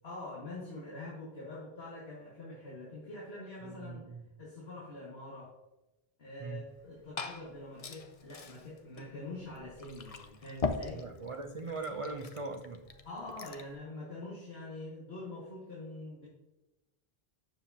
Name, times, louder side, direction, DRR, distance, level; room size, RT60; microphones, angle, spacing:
voice 1, 0.0-4.1 4.4-5.5 6.2-11.0 13.0-16.3, left 2 dB, 80° left, -7 dB, 2.1 m, -45 dB
voice 2, 3.6-4.3 6.4-6.6 10.9-12.9, right 3 dB, 40° right, 4 dB, 0.5 m, -40 dB
Glass / Fill (with liquid), 6.7-13.7, left 4 dB, 40° left, 0.6 m, -42 dB
9.4 x 6.9 x 2.8 m, 1.0 s
omnidirectional pair, 1.0 m